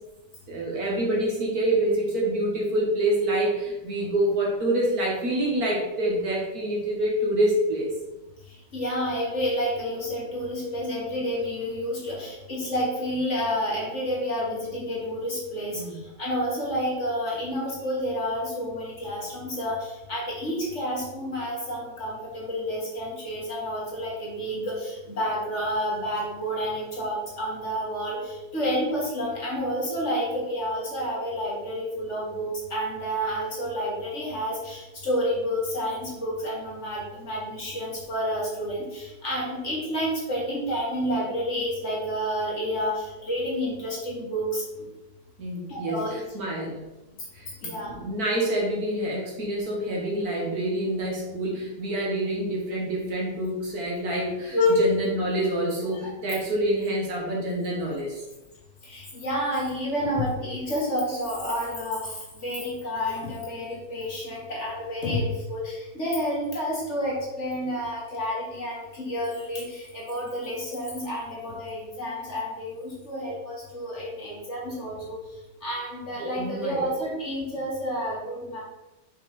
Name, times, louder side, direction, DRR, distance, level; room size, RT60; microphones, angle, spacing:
voice 1, 0.5-7.9 15.7-16.0 45.4-46.8 47.3-58.2 76.4-76.9, right 1 dB, 60° right, -3 dB, 2.0 m, -27 dB
voice 2, 8.7-15.8 16.2-44.9 45.7-46.1 47.6-48.0 54.5-54.8 55.9-56.1 58.8-75.2 75.6-78.6, equal, 45° left, -5 dB, 2.1 m, -29 dB
5.7 x 4.9 x 4.1 m, 1.0 s
omnidirectional pair, 1.8 m